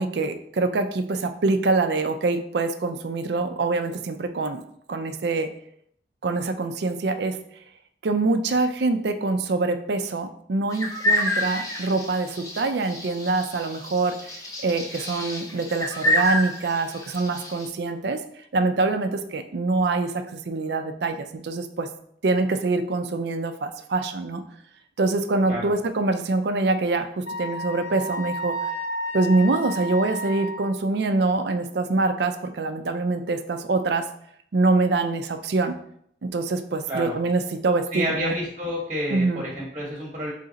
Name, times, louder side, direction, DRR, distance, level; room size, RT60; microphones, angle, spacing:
voice 1, 0.0-4.6 4.9-5.5 6.2-7.4 8.0-18.2 18.5-21.9 22.2-24.4 25.0-28.5 29.1-34.1 34.5-35.7 36.2-38.3 39.1-39.4, right 3 dB, 60° right, 8 dB, 0.4 m, -25 dB
sound 1, 10.7-17.7, left 1 dB, 20° left, 0.6 m, -28 dB
Wind instrument woodwind instrument, 27.3-30.7, equal, 75° left, 0.7 m, -31 dB
voice 2, 36.9-37.2 37.9-40.3, equal, 30° right, -3 dB, 1.0 m, -29 dB
4.0 x 3.2 x 3.8 m, 0.69 s
head